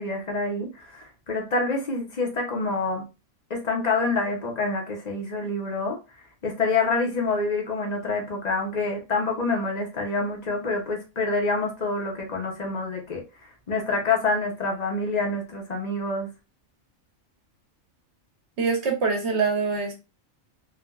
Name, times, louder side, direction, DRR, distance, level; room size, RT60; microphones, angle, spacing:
voice 1, 0.0-3.1 3.5-6.0 6.4-13.2 13.7-16.3, left 3 dB, 40° left, 0.7 m, -27 dB
voice 2, 18.6-19.9, right 4 dB, 60° right, 1.1 m, -24 dB
3.2 x 2.1 x 2.3 m
omnidirectional pair, 1.4 m